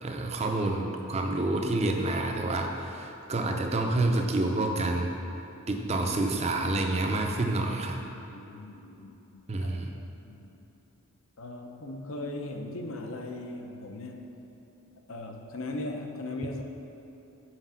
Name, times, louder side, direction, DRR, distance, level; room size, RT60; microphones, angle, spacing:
voice 1, 0.0-5.1 5.7-8.0 9.5-10.0, right 2 dB, 30° right, 3 dB, 0.5 m, -28 dB
voice 2, 8.3-9.7 10.2-10.5 11.4-14.3 15.1-16.6, left 2 dB, 65° left, 4 dB, 0.6 m, -38 dB
5.9 x 4.9 x 5.7 m, 3.0 s
head